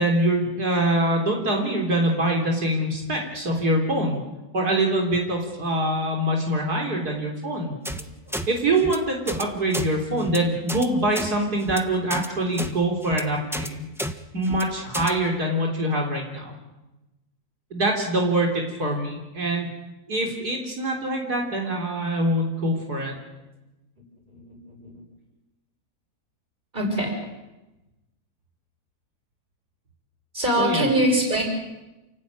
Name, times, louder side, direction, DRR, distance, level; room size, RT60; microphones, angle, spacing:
voice 1, 0.0-4.2 4.5-7.7 8.5-13.9 14.3-16.5 17.7-19.7 20.1-23.1 30.6-30.8, right 1 dB, 75° right, 0 dB, 4.2 m, -24 dB
sound 1, 7.8-8.0 8.3-8.5 8.8-9.0 9.3-9.4 9.7-9.9 10.2-10.4 10.7-10.9 11.1-11.3 11.6-11.8 12.1-12.3 12.6-12.7 13.0-13.2 13.5-13.7 14.0-14.1 14.4-14.6 14.9-15.1, equal, ahead, 1.2 m, -31 dB
voice 2, 24.3-25.0 26.7-27.2 30.3-31.4, right 1 dB, 30° right, 2 dB, 6.8 m, -24 dB
29.0 x 16.5 x 9.5 m, 1.0 s
omnidirectional pair, 1.7 m